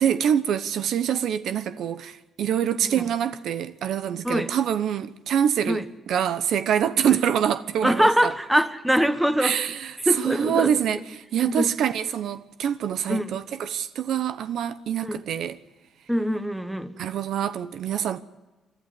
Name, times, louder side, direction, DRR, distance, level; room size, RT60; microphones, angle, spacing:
voice 1, 0.0-5.8 6.1-8.1 9.4-9.8 10.2-11.0 11.3-15.6 17.0-18.2, right 9 dB, 75° right, 1.0 m, -25 dB
voice 2, 7.8-10.8 11.4-11.8 13.1-13.4 15.0-15.2 16.1-16.9, equal, 5° right, 1.4 m, -24 dB
28.5 x 12.5 x 9.6 m
cardioid pair, 90°, 0 cm